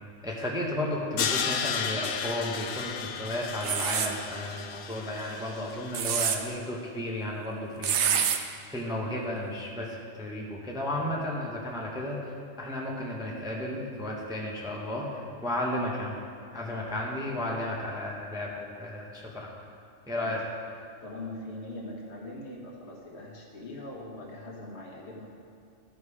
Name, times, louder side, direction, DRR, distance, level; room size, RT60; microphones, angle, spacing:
voice 1, 0.2-8.2 8.7-16.2 16.5-19.5 20.1-20.4, left 1 dB, 5° right, -3 dB, 0.8 m, -33 dB
Crash cymbal, 1.2-6.2, left 7 dB, 75° left, 0.9 m, -33 dB
sound 1, 3.6-4.1 5.7-6.4 7.8-8.4, right 8 dB, 70° right, 0.9 m, -26 dB
voice 2, 21.0-25.3, left 1 dB, 60° left, -3 dB, 1.6 m, -41 dB
13.0 x 5.2 x 4.8 m, 2.4 s
omnidirectional pair, 1.3 m